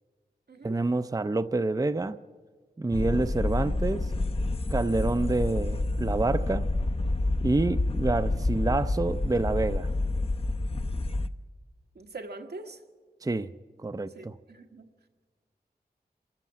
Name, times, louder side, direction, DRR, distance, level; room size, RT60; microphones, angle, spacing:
voice 1, 0.6-2.2 2.8-4.0 4.7-6.6 7.4-9.9 13.2-13.5 13.8-14.3, right 2 dB, 20° right, 11 dB, 0.5 m, -27 dB
sound 1, 2.9-11.3, left 2 dB, 35° left, 0.7 m, -28 dB
voice 2, 11.9-12.8 14.1-14.9, right 3 dB, 80° right, 4 dB, 1.5 m, -43 dB
26.5 x 13.5 x 7.5 m, 1.5 s
wide cardioid pair, 55°, 17 cm